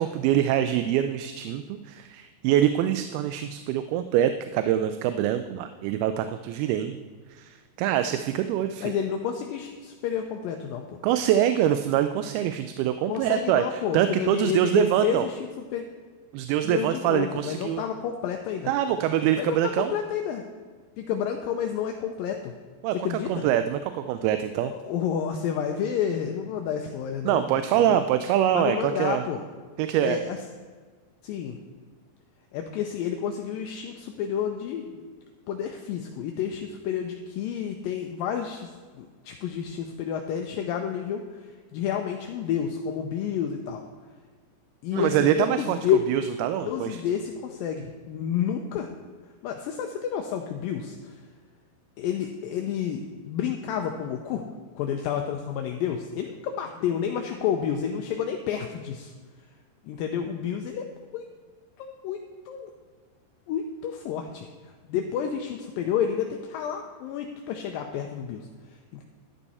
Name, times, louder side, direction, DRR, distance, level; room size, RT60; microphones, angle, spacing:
voice 1, 0.0-7.0 7.3-8.9 11.0-15.3 16.3-17.8 18.7-19.9 22.8-23.0 23.3-24.7 27.2-29.2 29.8-30.2 44.9-45.8 46.1-47.0, right 11 dB, 90° right, 9 dB, 2.5 m, -24 dB
voice 2, 8.8-11.0 13.1-15.4 15.7-15.8 16.6-18.7 19.4-20.5 21.0-22.5 23.0-23.5 24.7-27.4 27.9-28.0 28.5-29.4 30.0-30.4 31.2-31.6 32.5-34.9 35.5-38.7 39.0-41.4 41.7-43.8 44.8-46.0 46.7-48.9 49.4-51.1 52.0-54.4 54.8-59.1 59.8-60.9 61.1-61.2 61.8-62.2 62.5-62.7 63.5-64.5 64.9-68.4, left 8 dB, 80° left, 4 dB, 2.3 m, -30 dB
11.5 x 11.0 x 4.2 m, 1.5 s
omnidirectional pair, 4.4 m